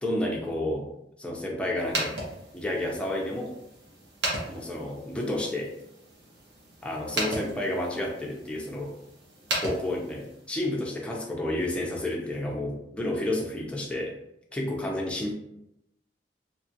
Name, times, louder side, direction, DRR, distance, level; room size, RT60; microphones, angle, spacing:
voice 1, 0.0-0.9 1.2-2.1 2.5-3.6 4.5-5.7 6.8-9.0 9.6-14.1 14.5-15.3, left 1 dB, 5° left, -2 dB, 0.5 m, -30 dB
sound 1, 1.8-10.5, right 1 dB, 75° right, 0.9 m, -36 dB
2.9 x 2.3 x 2.7 m, 0.82 s
head